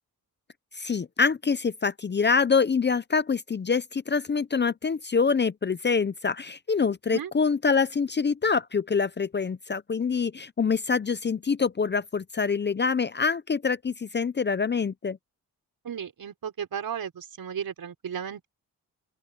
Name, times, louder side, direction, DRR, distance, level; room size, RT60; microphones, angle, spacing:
voice 1, 0.7-15.2, left 5 dB, 30° left, 0.6 m, -25 dB
voice 2, 15.8-18.5, right 8 dB, 70° right, 5.6 m, -34 dB
open air
cardioid pair, 85°, 37 cm